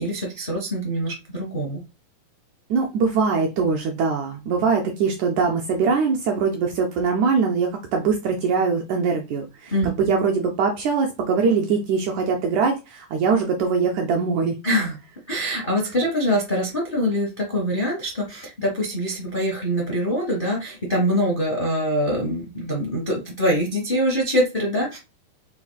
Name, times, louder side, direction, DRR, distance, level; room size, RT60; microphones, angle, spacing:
voice 1, 0.0-1.8 9.7-9.9 14.6-15.0 15.3-25.0, equal, 45° left, -2 dB, 0.6 m, -24 dB
voice 2, 2.7-14.6, right 5 dB, 75° right, 2 dB, 1.7 m, -22 dB
5.7 x 3.2 x 2.4 m, 0.27 s
omnidirectional pair, 3.9 m